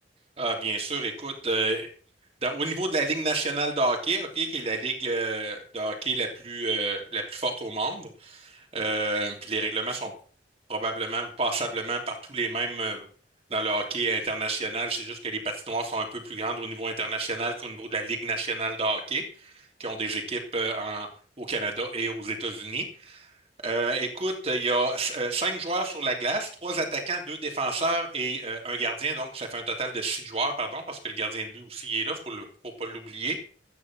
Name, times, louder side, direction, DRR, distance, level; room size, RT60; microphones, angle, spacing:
voice 1, 0.4-1.9 2.4-10.1 10.7-13.1 13.5-19.5 19.8-21.1 21.4-23.3 23.6-32.5 32.8-33.4, right 3 dB, 35° right, 2 dB, 3.1 m, -29 dB
13.5 x 9.5 x 6.1 m, 0.43 s
head